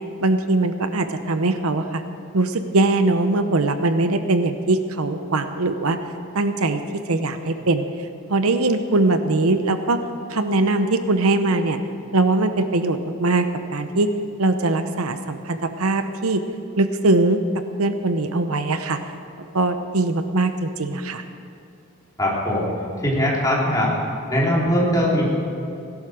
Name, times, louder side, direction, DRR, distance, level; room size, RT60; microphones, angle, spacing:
voice 1, 0.2-2.0 2.3-6.0 6.3-6.8 7.1-7.8 8.3-10.0 10.3-11.8 12.1-14.1 14.4-16.4 16.8-17.4 17.8-19.0 19.5-21.2, right 2 dB, 75° right, 9 dB, 0.8 m, -21 dB
voice 2, 22.2-22.7 23.0-23.9 24.3-25.3, equal, 15° left, -5 dB, 3.4 m, -20 dB
17.0 x 11.5 x 6.4 m, 2.6 s
head